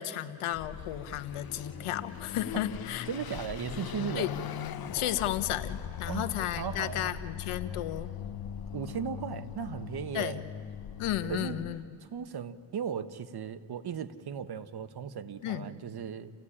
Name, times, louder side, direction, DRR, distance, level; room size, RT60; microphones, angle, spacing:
voice 1, 0.0-3.1 4.1-4.3 4.9-8.1 10.1-10.4 11.0-11.8 15.4-15.7, left 12 dB, 85° left, 11 dB, 1.4 m, -33 dB
Car passing by / Accelerating revving vroom, 0.5-11.8, left 9 dB, 45° left, 0.9 m, -40 dB
voice 2, 3.1-4.3 6.1-7.1 8.7-10.4 11.3-11.6 12.0-16.3, right 7 dB, 50° right, 12 dB, 1.3 m, -37 dB
28.5 x 16.0 x 9.9 m, 2.4 s
cardioid pair, 105°, 49 cm